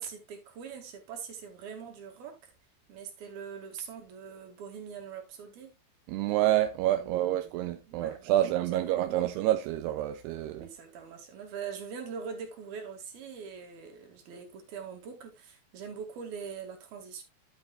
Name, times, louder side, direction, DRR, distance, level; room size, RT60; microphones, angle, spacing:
voice 1, 0.0-2.5 2.9-5.7 7.0-7.4 7.8-9.3 10.5-17.2, right 6 dB, 65° right, 4.0 m, -43 dB
voice 2, 6.1-10.7, right 13 dB, 80° right, 2.7 m, -28 dB
11.5 x 8.1 x 2.5 m
omnidirectional pair, 4.8 m